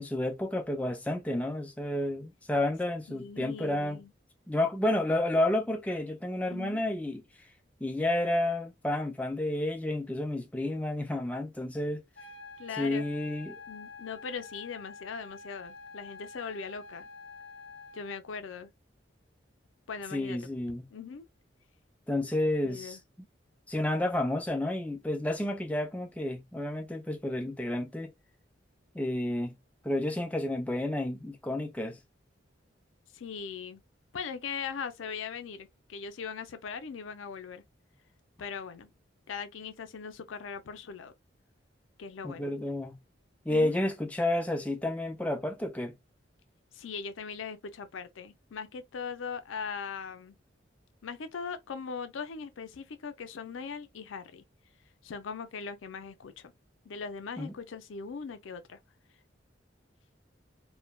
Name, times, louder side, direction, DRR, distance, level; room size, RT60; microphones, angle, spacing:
voice 1, 0.0-4.0 4.5-7.2 7.8-12.0 12.8-13.6 20.1-20.8 22.1-23.0 23.7-28.1 28.9-29.5 29.8-32.0 42.2-42.9 43.5-45.9 57.4-57.5, left 1 dB, 5° left, 0.3 m, -30 dB
voice 2, 3.1-4.1 6.5-6.8 12.6-13.0 13.7-17.1 17.9-18.7 19.9-20.4 20.9-21.3 22.6-23.0 33.1-33.8 34.1-37.6 38.4-38.9 39.3-41.1 42.0-42.6 43.5-43.8 46.7-50.4 51.0-54.4 55.0-56.5 56.8-58.8, left 6 dB, 90° left, 0.5 m, -40 dB
sound 1, 12.2-18.1, left 3 dB, 75° left, 1.1 m, -48 dB
3.1 x 2.1 x 2.3 m
head